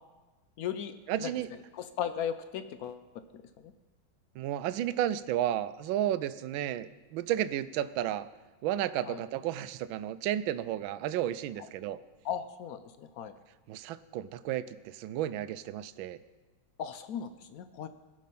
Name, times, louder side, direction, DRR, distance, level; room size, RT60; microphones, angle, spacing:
voice 1, 0.6-1.3 1.7-3.0 3.3-3.7 9.0-9.2 12.2-13.3 16.8-17.9, left 8 dB, 70° left, 11 dB, 0.8 m, -37 dB
voice 2, 1.1-1.5 4.4-8.3 8.6-12.0 13.7-16.2, right 12 dB, 80° right, 14 dB, 1.3 m, -32 dB
18.5 x 6.4 x 5.4 m, 1.2 s
omnidirectional pair, 2.2 m